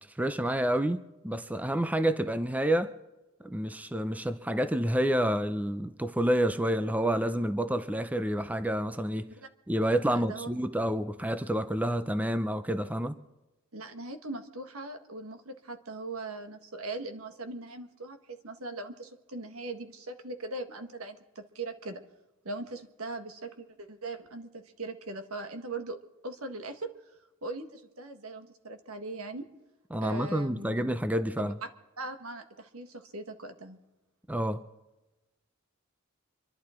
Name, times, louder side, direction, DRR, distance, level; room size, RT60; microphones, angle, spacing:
voice 1, 0.2-2.9 3.4-9.3 9.7-13.2 29.9-31.5 34.3-34.6, right 1 dB, 5° right, 0.6 m, -29 dB
voice 2, 10.1-10.5 13.7-22.0 22.4-26.0 26.2-26.9 27.4-29.5 30.0-30.8 31.4-31.5 32.0-33.8, right 2 dB, 85° right, 1.7 m, -40 dB
25.5 x 11.5 x 4.4 m
head